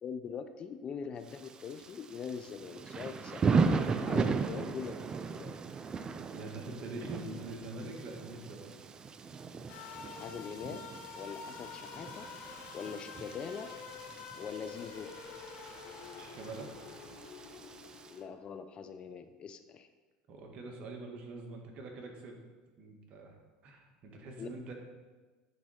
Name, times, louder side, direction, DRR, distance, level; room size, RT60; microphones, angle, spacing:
voice 1, 0.0-3.5 4.0-5.6 10.1-10.8 11.1-12.2 12.7-13.7 14.3-15.1 18.1-19.9 24.4-24.5, left 6 dB, 40° left, 10 dB, 0.5 m, -42 dB
Thunder / Rain, 1.3-18.1, right 5 dB, 30° right, 0.4 m, -37 dB
voice 2, 6.3-8.7 16.2-16.7 20.3-22.4 22.8-23.4 23.6-24.7, right 2 dB, 50° right, 2 dB, 1.6 m, -44 dB
sound 1, 9.7-18.5, left 5 dB, 65° left, 1.0 m, -48 dB
9.6 x 3.9 x 4.9 m, 1.3 s
supercardioid pair, 105°, 3 cm